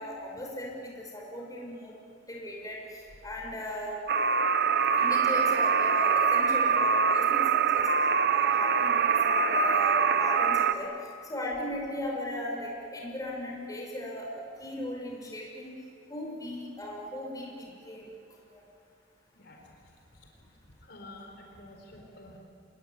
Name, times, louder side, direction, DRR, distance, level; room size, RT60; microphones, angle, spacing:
voice 1, 0.0-1.9 2.3-4.0 4.9-7.9 8.3-10.9 11.2-15.8 16.1-18.1 18.5-18.6, left 1 dB, 20° left, -2 dB, 6.5 m, -37 dB
sound 1, 4.1-10.7, right 5 dB, 60° right, 1.0 m, -24 dB
voice 2, 20.9-22.4, left 1 dB, 65° left, 1 dB, 4.2 m, -48 dB
27.5 x 21.0 x 10.0 m, 2.4 s
head